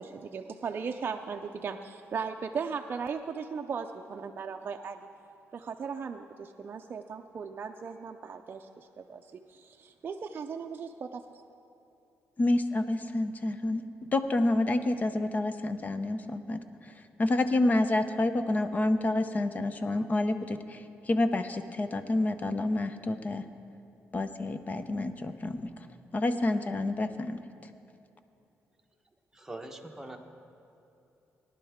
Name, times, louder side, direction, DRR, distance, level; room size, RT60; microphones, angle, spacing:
voice 1, 0.0-5.1 5.5-9.2 9.5-11.2, right 6 dB, 45° right, 4 dB, 0.5 m, -37 dB
voice 2, 12.4-13.8 14.1-16.9 17.2-23.4 24.1-25.7 26.1-27.4, left 2 dB, 35° left, 10 dB, 0.7 m, -28 dB
voice 3, 29.3-30.2, right 1 dB, 10° right, 2 dB, 1.1 m, -42 dB
18.5 x 11.0 x 3.6 m, 2.9 s
cardioid pair, 105°, 5 cm